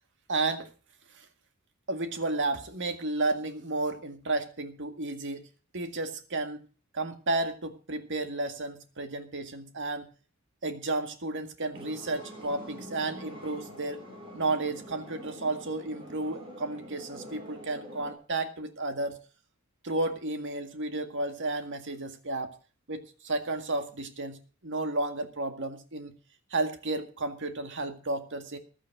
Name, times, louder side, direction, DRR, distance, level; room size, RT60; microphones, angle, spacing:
voice 1, 0.3-0.7 1.2-1.3 1.9-5.5 5.7-6.6 6.9-10.1 10.6-14.0 14.3-19.2 19.8-22.5 22.9-26.2 26.5-28.6, right 2 dB, 60° right, 7 dB, 2.0 m, -32 dB
sound 1, 11.7-18.1, equal, 25° right, 5.2 m, -46 dB
15.0 x 11.0 x 4.8 m, 0.37 s
head